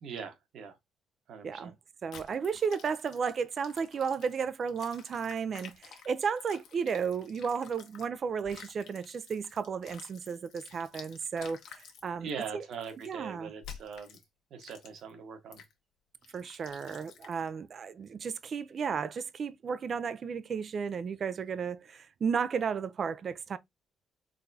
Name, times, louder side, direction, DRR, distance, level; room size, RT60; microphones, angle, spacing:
voice 1, 0.0-0.8 1.3-1.7 12.2-14.2 14.5-15.6, right 6 dB, 70° right, 1.4 m, -41 dB
voice 2, 1.4-1.7 2.0-12.7 13.0-13.5 16.3-23.6, right 6 dB, 50° right, 0.4 m, -33 dB
sound 1, 2.1-8.1 8.4-12.1 12.7-13.1 13.6-14.2 14.6-15.1 15.5-15.7 16.2-17.5, left 7 dB, 80° left, 1.1 m, -51 dB
4.0 x 3.6 x 2.7 m
cardioid pair, 90°, 0 cm